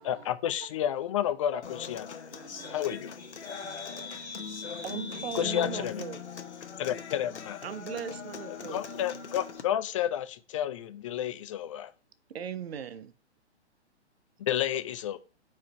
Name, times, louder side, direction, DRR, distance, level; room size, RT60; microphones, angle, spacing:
voice 1, 0.0-2.1 2.6-3.1 5.3-6.0 6.8-7.6 8.5-11.9 14.4-15.2, left 11 dB, 30° left, 0.4 m, -31 dB
Human voice / Acoustic guitar, 1.6-9.6, left 6 dB, 75° left, 0.9 m, -41 dB
voice 2, 2.3-5.6, left 2 dB, 25° right, 0.8 m, -43 dB
voice 3, 4.8-6.2 7.6-8.8 12.3-13.1, right 8 dB, 65° right, 0.7 m, -38 dB
4.8 x 4.6 x 5.9 m
figure-of-eight pair, 125°, 34 cm